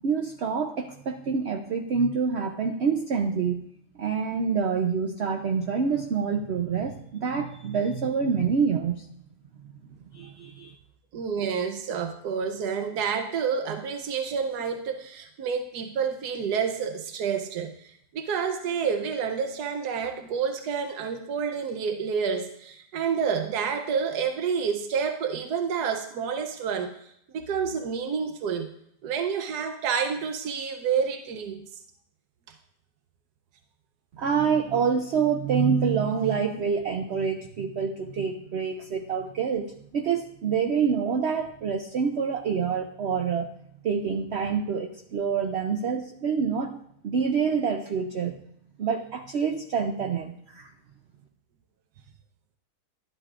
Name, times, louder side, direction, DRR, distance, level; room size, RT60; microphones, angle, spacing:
voice 1, 0.0-3.6 4.0-9.1 10.1-10.7 34.2-43.5 43.8-46.8 47.0-48.4 48.8-50.7, right 6 dB, 55° right, 4 dB, 0.8 m, -27 dB
voice 2, 11.1-27.0 27.3-28.7 29.0-31.6, right 6 dB, 85° right, 6 dB, 1.3 m, -29 dB
12.0 x 11.0 x 2.4 m, 0.72 s
omnidirectional pair, 1.7 m